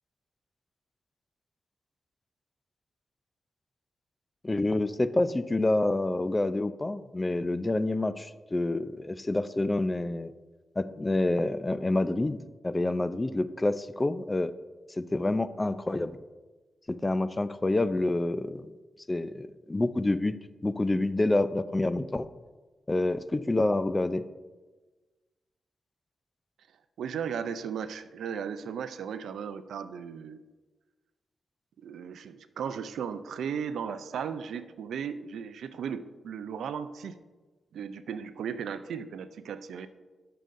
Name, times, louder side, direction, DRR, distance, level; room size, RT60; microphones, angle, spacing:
voice 1, 4.4-10.3 10.8-12.4 12.6-14.5 15.0-16.1 16.9-18.7 19.1-20.4 20.6-22.3 22.9-24.3, left 2 dB, 25° left, 13 dB, 0.4 m, -27 dB
voice 2, 27.0-30.4 31.8-37.2 37.7-39.9, right 7 dB, 90° right, 12 dB, 0.4 m, -36 dB
13.0 x 6.6 x 2.6 m, 1.3 s
cardioid pair, 70°, 0 cm